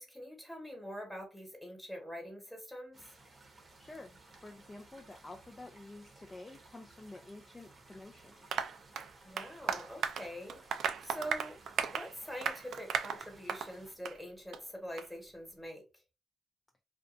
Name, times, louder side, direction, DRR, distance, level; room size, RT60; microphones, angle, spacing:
voice 1, 0.0-3.0 9.2-11.6 11.9-15.8, equal, 5° left, 1.2 m, -45 dB
sound 1, 2.9-14.0, right 2 dB, 30° right, 0.8 m, -59 dB
voice 2, 3.8-8.6, left 2 dB, 25° left, 0.4 m, -50 dB
Applause, 8.5-13.7 14.0-14.2 14.5-14.6 15.0-15.1, right 7 dB, 70° right, 0.3 m, -36 dB
2.5 x 2.3 x 2.5 m
cardioid pair, 90°, 0 cm